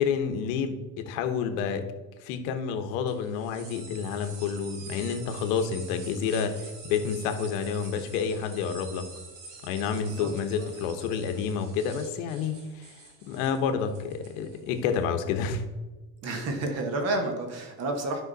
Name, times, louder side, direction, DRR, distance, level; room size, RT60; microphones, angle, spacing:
voice 1, 0.0-1.9 2.2-9.1 9.6-12.9 13.3-15.6, left 6 dB, 60° left, 7 dB, 1.2 m, -29 dB
sound 1, 3.1-15.0, right 4 dB, 90° right, 2.8 m, -47 dB
voice 2, 10.0-10.3 10.5-10.7 16.2-18.2, right 2 dB, 30° right, 4 dB, 1.4 m, -30 dB
12.0 x 5.6 x 4.1 m, 1.2 s
cardioid pair, 165°, 47 cm